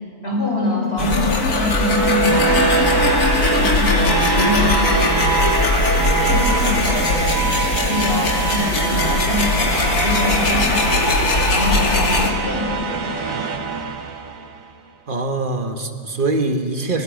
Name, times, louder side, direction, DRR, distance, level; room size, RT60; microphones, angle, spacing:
voice 1, 0.2-5.7 6.2-7.5 7.7-11.2 11.5-13.5, left 2 dB, 40° left, -1 dB, 6.0 m, -25 dB
sound 1, 1.0-12.3, left 2 dB, 75° left, 2.8 m, -19 dB
sound 2, 1.6-14.6, right 6 dB, 60° right, 1.6 m, -24 dB
voice 2, 15.1-17.0, right 2 dB, 35° right, 5 dB, 1.8 m, -23 dB
26.5 x 24.5 x 6.6 m, 2.3 s
omnidirectional pair, 1.6 m